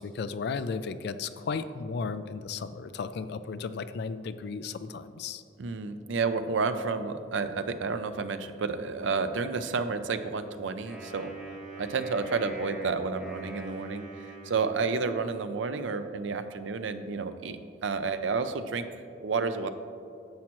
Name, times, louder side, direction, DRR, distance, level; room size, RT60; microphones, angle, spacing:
voice 1, 0.0-5.4, left 5 dB, 55° left, 13 dB, 0.3 m, -34 dB
voice 2, 5.6-11.3 11.8-18.9 19.2-19.7, right 4 dB, 70° right, 10 dB, 0.5 m, -30 dB
Wind instrument woodwind instrument, 10.8-15.3, right 2 dB, 5° right, 2.1 m, -44 dB
10.5 x 7.3 x 3.0 m, 2.5 s
head